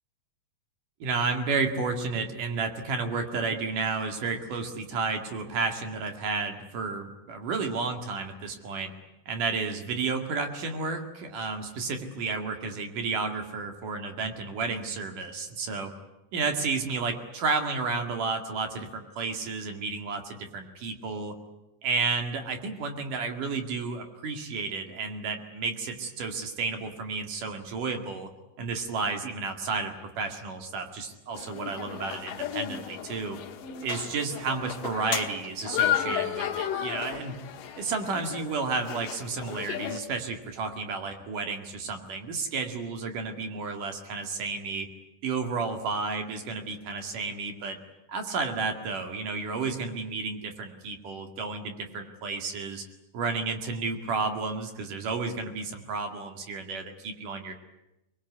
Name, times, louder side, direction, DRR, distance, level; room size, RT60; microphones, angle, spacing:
voice 1, 1.0-8.9 9.3-15.9 16.3-21.4 21.8-28.3 28.6-33.4 33.8-37.4 37.8-44.9 45.2-47.8 48.1-52.8 53.1-57.5, right 4 dB, 55° right, 5 dB, 3.4 m, -32 dB
crowd int high school hallway light active, 31.3-40.0, left 10 dB, 65° left, 2.6 m, -33 dB
24.5 x 21.0 x 9.7 m, 0.93 s
omnidirectional pair, 4.8 m